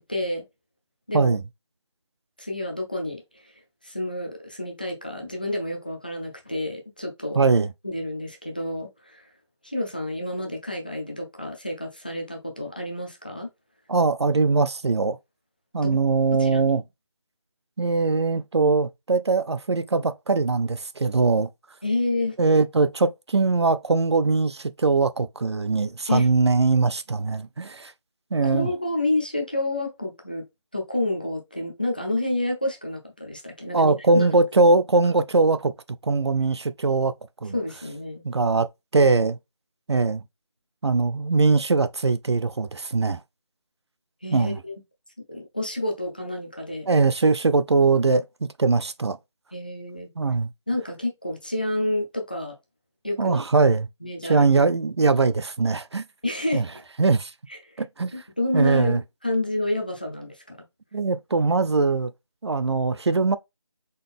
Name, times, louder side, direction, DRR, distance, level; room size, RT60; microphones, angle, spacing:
voice 1, 0.1-0.4 1.1-1.4 2.4-3.5 3.8-7.4 7.8-9.3 9.6-13.5 15.8-16.0 16.4-16.7 21.8-22.4 26.1-26.3 28.4-30.4 30.7-34.3 37.5-38.2 44.2-44.7 45.3-46.9 49.5-50.1 50.7-52.5 53.0-53.4 54.0-54.5 56.2-56.8 57.5-57.7 58.1-60.6, left 1 dB, 20° left, 0.5 m, -29 dB
voice 2, 7.4-7.7 13.9-15.2 15.7-16.8 17.8-21.5 22.4-27.9 28.3-28.7 33.7-35.7 36.0-37.1 37.4-37.5 38.2-38.7 38.9-39.4 39.9-40.2 40.8-43.2 44.3-44.6 46.9-49.2 50.2-50.5 53.2-53.9 54.3-56.0 56.5-56.7 57.0-57.3 57.8-58.1 58.5-59.0 60.9-62.1 62.4-63.4, right 3 dB, 60° right, 0.4 m, -21 dB
3.9 x 3.8 x 3.5 m
figure-of-eight pair, 175°, 15 cm